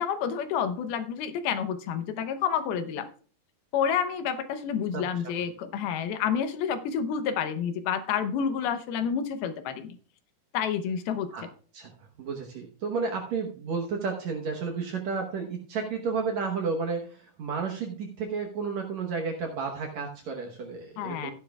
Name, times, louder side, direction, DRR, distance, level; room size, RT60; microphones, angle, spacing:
voice 1, 0.0-3.1 3.7-10.0 10.5-11.3 21.0-21.3, left 7 dB, 85° left, 10 dB, 2.8 m, -29 dB
voice 2, 12.2-21.3, right 5 dB, 65° right, 2 dB, 1.9 m, -32 dB
15.0 x 10.0 x 2.3 m, 0.41 s
omnidirectional pair, 4.4 m